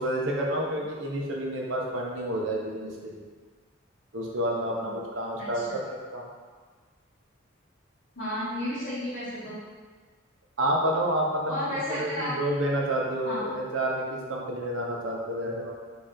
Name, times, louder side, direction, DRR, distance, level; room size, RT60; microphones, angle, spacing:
voice 1, 0.0-3.3 4.1-6.3 10.6-15.7, right 1 dB, 65° right, -2 dB, 0.7 m, -29 dB
voice 2, 5.4-5.8 8.1-9.6 11.5-12.3 13.2-13.4, left 1 dB, 50° left, -15 dB, 1.3 m, -33 dB
3.2 x 3.0 x 3.7 m, 1.5 s
head